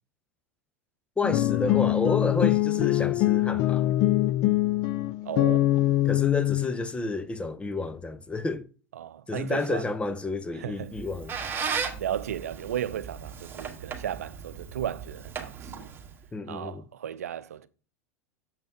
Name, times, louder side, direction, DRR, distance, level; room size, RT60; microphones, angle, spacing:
sound 1, 1.2-6.7, left 15 dB, 50° left, 0.5 m, -23 dB
voice 1, 1.2-3.9 6.0-8.7 9.3-11.3 16.3-16.8, left 3 dB, 15° left, 0.7 m, -30 dB
voice 2, 5.2-5.7 9.0-9.9 10.5-11.0 12.0-15.9 16.5-17.7, right 10 dB, 80° right, 0.6 m, -35 dB
Squeak, 10.8-16.3, right 6 dB, 25° right, 1.7 m, -36 dB
7.3 x 5.4 x 4.5 m
hypercardioid pair, 95°, 8 cm